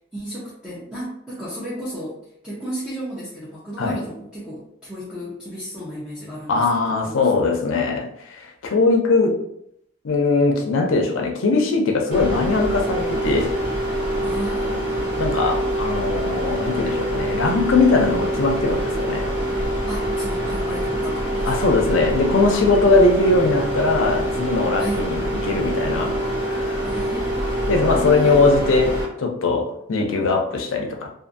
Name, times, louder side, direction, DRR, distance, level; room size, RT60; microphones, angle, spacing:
voice 1, 0.1-2.2 2.4-7.3 14.2-15.5 19.9-21.7 22.5-22.6 24.8-25.0 26.8-28.4, right 1 dB, 5° right, -9 dB, 0.6 m, -34 dB
voice 2, 6.5-9.4 10.0-13.5 15.2-19.3 21.5-26.9 27.7-31.1, left 3 dB, 80° left, 2 dB, 0.5 m, -20 dB
sound 1, 12.1-29.0, right 1 dB, 45° right, 1.2 m, -25 dB
2.5 x 2.5 x 2.5 m, 0.73 s
head